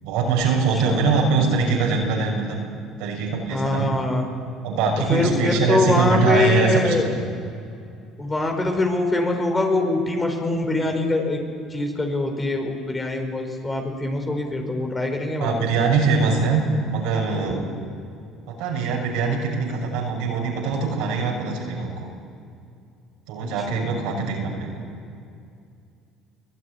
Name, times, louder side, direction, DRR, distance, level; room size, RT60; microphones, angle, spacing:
voice 1, 0.0-2.6 3.0-4.0 4.6-7.2 15.4-17.7 18.6-22.1 23.3-24.8, right 4 dB, 75° right, 0 dB, 6.4 m, -22 dB
voice 2, 3.5-4.2 5.1-7.1 8.2-11.4 11.7-15.7 17.5-17.6 23.4-23.8, left 2 dB, 20° left, 3 dB, 5.0 m, -23 dB
23.5 x 15.5 x 10.0 m, 2.4 s
supercardioid pair, 75°, 0 cm